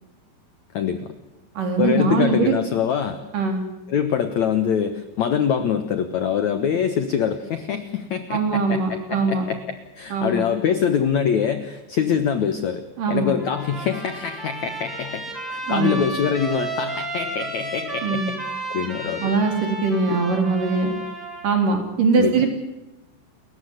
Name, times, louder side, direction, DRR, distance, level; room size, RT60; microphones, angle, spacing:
voice 1, 0.7-1.0 1.8-3.2 3.9-18.4 18.7-19.4 20.1-20.2 22.1-22.4, left 7 dB, 85° left, 9 dB, 1.6 m, -24 dB
voice 2, 1.5-2.6 3.3-3.6 8.3-9.5 10.1-10.5 13.0-13.4 15.7-16.0 18.0-18.3 19.2-20.9 21.4-22.5, right 4 dB, 50° right, 4 dB, 4.8 m, -21 dB
Trumpet, 13.4-21.6, right 2 dB, ahead, 5.1 m, -33 dB
30.0 x 14.5 x 9.8 m, 1.0 s
omnidirectional pair, 5.1 m